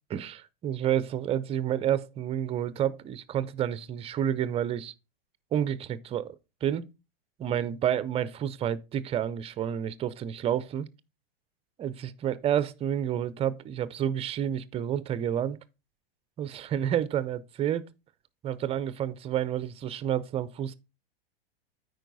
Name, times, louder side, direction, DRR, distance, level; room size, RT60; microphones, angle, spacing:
voice 1, 0.1-4.9 5.5-6.4 6.6-6.8 7.4-10.9 11.8-15.6 16.4-17.9 18.4-20.7, right 10 dB, 20° right, 0.4 m, -29 dB
9.0 x 4.8 x 3.9 m
hypercardioid pair, 105°, 31 cm